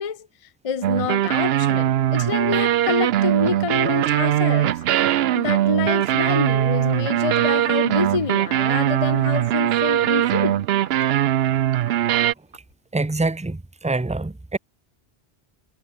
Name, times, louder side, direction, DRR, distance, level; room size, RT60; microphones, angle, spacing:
voice 1, 0.0-10.6, left 6 dB, 35° left, 0.8 m, -28 dB
sound 1, 0.8-12.3, right 12 dB, 75° right, 0.8 m, -20 dB
sound 2, 3.2-12.7, right 3 dB, 60° right, 2.8 m, -47 dB
voice 2, 12.9-14.6, right 2 dB, 10° right, 0.3 m, -25 dB
omnidirectional pair, 1.1 m